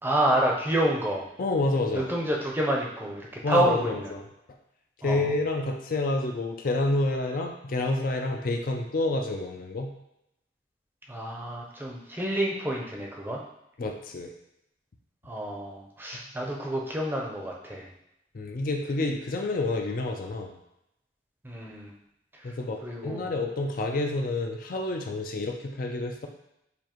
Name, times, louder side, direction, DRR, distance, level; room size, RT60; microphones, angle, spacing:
voice 1, 0.0-1.3 1.9-4.1 5.0-5.3 11.1-13.4 15.2-17.9 21.4-21.9 22.3-22.5 22.8-23.3, right 1 dB, 10° right, -2 dB, 0.6 m, -28 dB
voice 2, 1.4-2.1 3.4-4.2 5.0-9.9 13.8-14.3 18.3-20.6 22.4-26.3, left 2 dB, 50° left, 3 dB, 0.4 m, -28 dB
6.8 x 2.6 x 3.0 m, 0.84 s
head